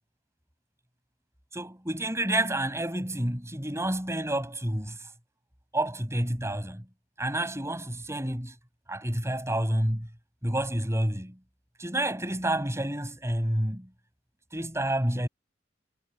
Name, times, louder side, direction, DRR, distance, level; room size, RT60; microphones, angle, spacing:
voice 1, 1.5-5.0 5.7-6.8 7.2-8.5 8.9-10.1 10.4-11.4 11.8-13.9 14.5-15.3, right 1 dB, 15° right, 7.7 m, -29 dB
head